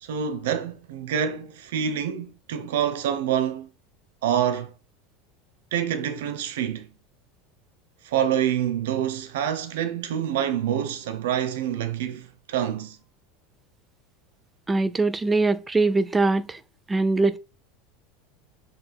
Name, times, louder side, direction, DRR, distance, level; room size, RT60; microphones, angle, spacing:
voice 1, 0.0-3.7 4.2-4.7 5.7-6.9 8.0-13.0, right 9 dB, 80° right, 1.1 m, -27 dB
voice 2, 14.7-16.6 16.9-17.4, right 3 dB, 15° right, 0.7 m, -22 dB
6.4 x 4.4 x 3.6 m
supercardioid pair, 110°, 0 cm